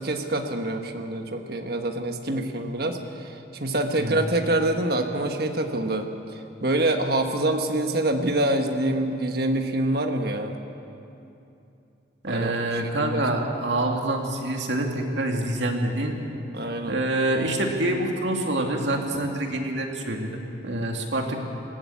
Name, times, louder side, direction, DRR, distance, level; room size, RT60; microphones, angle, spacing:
voice 1, 0.0-6.1 6.6-10.6 12.3-12.7 13.0-13.2 16.5-17.0, right 1 dB, 55° right, 5 dB, 1.4 m, -26 dB
voice 2, 12.2-16.2 16.8-21.3, right 1 dB, 75° right, 2 dB, 2.3 m, -26 dB
19.0 x 16.0 x 8.5 m, 2.8 s
head